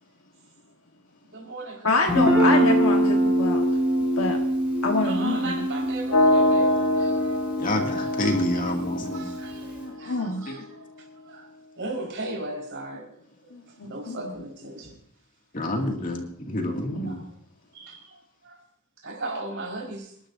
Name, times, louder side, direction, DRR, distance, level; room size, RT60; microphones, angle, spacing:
voice 1, 1.3-2.3 5.0-7.4 8.0-8.8 9.1-10.9 11.2-11.5 11.8-13.1 13.4-15.0 16.1-16.2 17.0-17.3 17.7-18.6 19.0-20.1, right 2 dB, 55° right, 0 dB, 4.7 m, -37 dB
voice 2, 1.8-3.6 4.2-4.4 4.8-5.6 9.8-10.4 13.5-14.3 16.5-17.1, left 3 dB, 70° left, 2 dB, 1.4 m, -27 dB
Guitar, 2.1-9.8, equal, 5° right, 5.1 m, -24 dB
sound 1, 6.1-10.1, left 1 dB, 85° left, 1.2 m, -24 dB
voice 3, 7.6-9.2 15.5-17.2, left 1 dB, 40° left, 1 dB, 2.4 m, -28 dB
28.0 x 12.0 x 2.7 m, 0.66 s
head